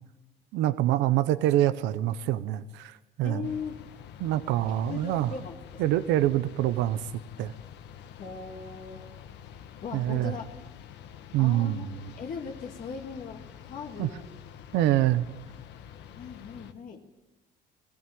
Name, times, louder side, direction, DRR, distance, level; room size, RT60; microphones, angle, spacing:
voice 1, 0.5-3.5 4.2-5.3 5.8-7.1 7.4-7.5 9.9-10.4 11.3-11.9 14.0-14.1 14.7-15.2, right 13 dB, 90° right, 14 dB, 0.9 m, -25 dB
voice 2, 3.2-3.8 4.9-6.0 8.2-9.0 9.8-10.5 11.4-11.9 12.2-14.3 14.8-14.9 16.1-17.1, left 6 dB, 50° left, 2 dB, 2.2 m, -39 dB
sound 1, 3.4-16.7, left 9 dB, 75° left, 1.6 m, -47 dB
19.5 x 15.5 x 9.2 m, 1.0 s
cardioid pair, 120°, 18 cm